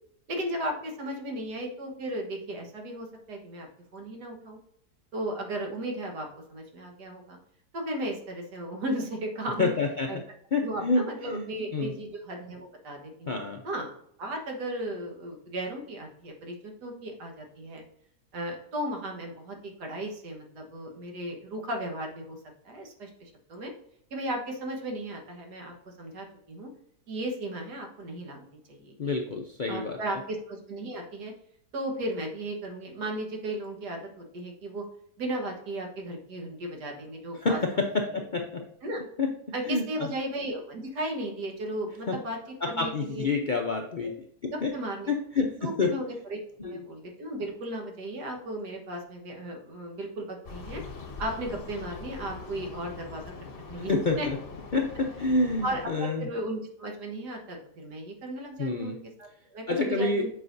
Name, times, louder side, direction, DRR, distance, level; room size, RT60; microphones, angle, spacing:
voice 1, 0.3-3.7 3.9-4.6 5.1-7.4 7.7-9.7 10.1-10.2 10.6-13.3 13.6-13.9 14.2-17.8 18.3-22.4 22.7-23.7 24.1-26.7 27.1-29.1 29.7-31.3 31.7-34.8 35.2-37.6 38.1-38.2 38.8-39.0 39.5-42.4 42.7-43.3 44.5-45.1 45.6-50.8 51.2-53.3 53.7-54.3 55.6-60.3, right 1 dB, 85° right, 2 dB, 1.9 m, -35 dB
voice 2, 9.6-10.1 10.5-11.5 11.7-11.9 13.3-13.6 29.0-30.0 37.4-38.7 39.2-39.3 39.7-39.8 42.1-42.2 42.6-44.1 44.6-44.7 45.1-45.9 46.6-46.8 53.8-54.4 54.7-56.3 58.6-59.0 59.7-60.3, left 3 dB, 60° left, 2 dB, 0.5 m, -28 dB
sound 1, 50.4-55.9, left 4 dB, 45° left, 0.9 m, -42 dB
8.1 x 5.1 x 2.6 m, 0.69 s
omnidirectional pair, 1.7 m